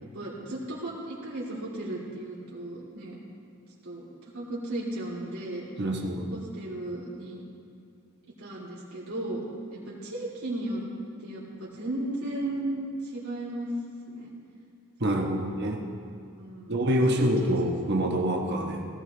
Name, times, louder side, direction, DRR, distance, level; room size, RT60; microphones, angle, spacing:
voice 1, 0.0-3.2 3.8-5.6 6.3-7.4 8.4-10.8 11.2-13.7 14.1-14.3 16.4-17.3, right 1 dB, 85° right, -7 dB, 3.1 m, -35 dB
voice 2, 5.8-6.3 15.0-15.8 16.7-18.9, equal, 50° right, 1 dB, 1.1 m, -26 dB
17.5 x 16.0 x 3.4 m, 2.4 s
head